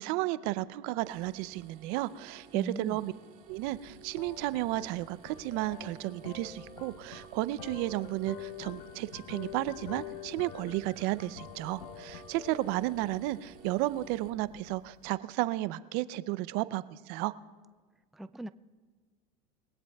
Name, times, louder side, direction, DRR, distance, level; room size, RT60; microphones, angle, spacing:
voice 1, 0.0-3.1 3.5-17.3, right 17 dB, 65° right, 16 dB, 0.6 m, -33 dB
sound 1, 1.0-14.3, right 9 dB, 50° right, 2.4 m, -56 dB
voice 2, 2.5-3.0 18.1-18.5, right 1 dB, ahead, 13 dB, 0.3 m, -39 dB
sound 2, 3.5-15.1, left 9 dB, 90° left, 0.9 m, -47 dB
22.0 x 17.5 x 2.3 m, 1.4 s
supercardioid pair, 100°, 18 cm